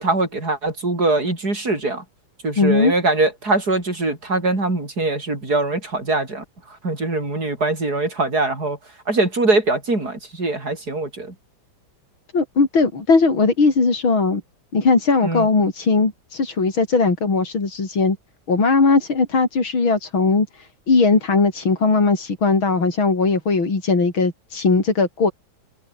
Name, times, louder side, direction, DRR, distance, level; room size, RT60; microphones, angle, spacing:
voice 1, 0.0-2.0 2.4-6.4 6.8-8.8 9.1-11.3 15.2-15.5, right 2 dB, 50° right, 6.6 m, -22 dB
voice 2, 2.6-2.9 12.3-14.4 14.7-18.2 18.5-25.3, left 4 dB, 80° left, 5.2 m, -19 dB
omnidirectional pair, 2.2 m